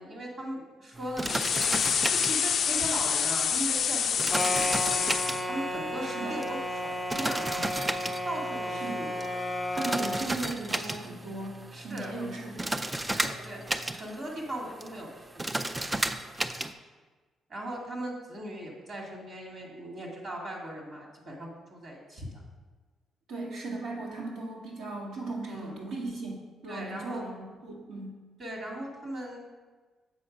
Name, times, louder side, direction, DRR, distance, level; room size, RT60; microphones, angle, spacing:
voice 1, 0.0-1.7 2.1-4.2 4.4-7.7 8.2-9.3 11.7-12.2 13.1-13.6 14.0-15.7 17.5-22.4 25.5-25.8 26.7-27.2 28.4-29.4, right 1 dB, 55° right, -1 dB, 2.0 m, -38 dB
sound 1, 0.9-16.7, right 1 dB, 15° right, 0.4 m, -35 dB
sound 2, 1.2-5.4, left 7 dB, 55° left, 0.3 m, -27 dB
sound 3, 4.3-10.3, equal, ahead, 0.8 m, -33 dB
voice 2, 9.7-12.7 23.3-28.2, right 2 dB, 80° right, -4 dB, 2.1 m, -37 dB
7.6 x 4.3 x 5.2 m, 1.3 s
cardioid pair, 90°, 0 cm